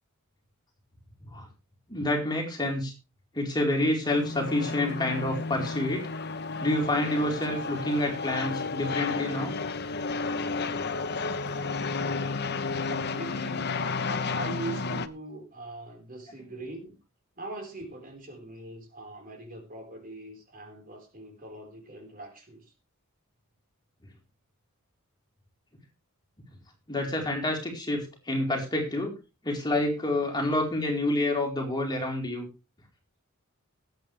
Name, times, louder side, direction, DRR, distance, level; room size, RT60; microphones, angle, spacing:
voice 1, 1.9-2.9 3.3-6.0 6.6-9.5 16.4-16.5 26.9-29.1 29.4-32.5, left 1 dB, 20° left, 1 dB, 4.2 m, -28 dB
sound 1, 4.0-15.1, left 4 dB, 50° left, 1.0 m, -32 dB
voice 2, 12.8-13.7 14.3-16.9 17.4-22.6, right 2 dB, 40° right, 3 dB, 4.7 m, -41 dB
20.0 x 9.1 x 3.4 m, 0.30 s
head